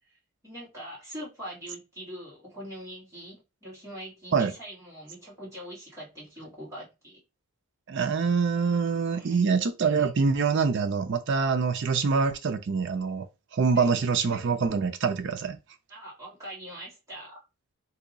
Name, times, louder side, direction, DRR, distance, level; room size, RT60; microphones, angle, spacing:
voice 1, 0.4-7.2 9.0-9.4 13.7-14.0 15.9-17.4, equal, 15° right, 1.5 m, -43 dB
voice 2, 7.9-13.3 13.5-15.6, right 5 dB, 55° right, 0.4 m, -25 dB
2.7 x 2.3 x 3.9 m
head